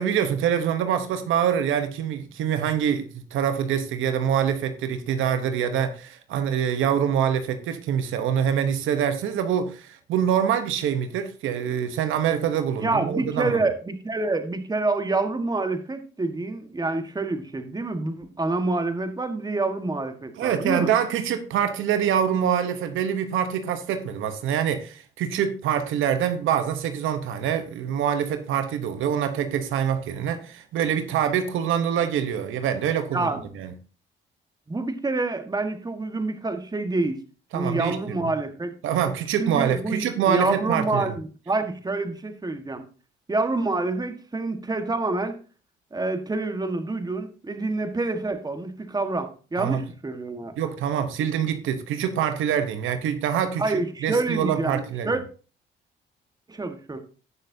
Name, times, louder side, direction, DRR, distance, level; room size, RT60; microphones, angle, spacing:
voice 1, 0.0-13.6 20.4-33.7 37.5-38.2 38.8-41.0 49.6-49.8 50.6-55.1, right 8 dB, 85° right, 1.1 m, -25 dB
voice 2, 12.8-20.9 33.1-33.4 34.7-37.2 37.5-38.8 39.4-42.8 43.3-45.4 45.9-50.5 53.6-55.2 56.5-57.0, right 2 dB, 20° right, 1.6 m, -27 dB
16.5 x 6.5 x 2.8 m
cardioid pair, 90°, 20 cm